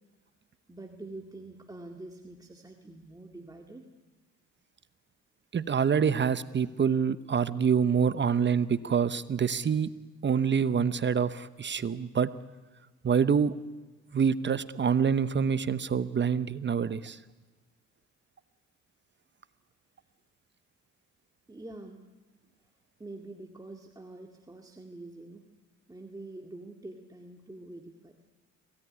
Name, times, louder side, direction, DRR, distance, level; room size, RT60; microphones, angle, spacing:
voice 1, 0.7-3.9 6.0-6.1 21.5-22.0 23.0-25.5 25.9-28.2, right 2 dB, 10° right, 2 dB, 2.1 m, -45 dB
voice 2, 5.5-9.9 10.2-12.3 13.0-13.6 14.1-17.2, right 7 dB, 40° right, 14 dB, 0.9 m, -26 dB
26.0 x 17.5 x 9.8 m, 1.3 s
cardioid pair, 90°, 30 cm